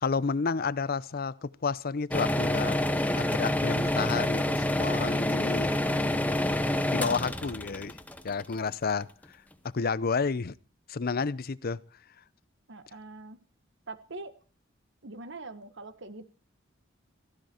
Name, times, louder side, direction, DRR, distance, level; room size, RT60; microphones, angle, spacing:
voice 1, 0.0-2.8 3.2-5.8 6.9-8.0 8.2-9.1 9.7-10.6 10.9-11.8, left 5 dB, 50° left, 0.6 m, -30 dB
sound 1, 2.1-9.0, left 1 dB, 10° left, 1.0 m, -28 dB
voice 2, 5.9-6.2 12.7-13.4 13.9-14.3 15.0-16.3, right 2 dB, 65° right, 1.4 m, -43 dB
15.5 x 15.0 x 4.4 m
head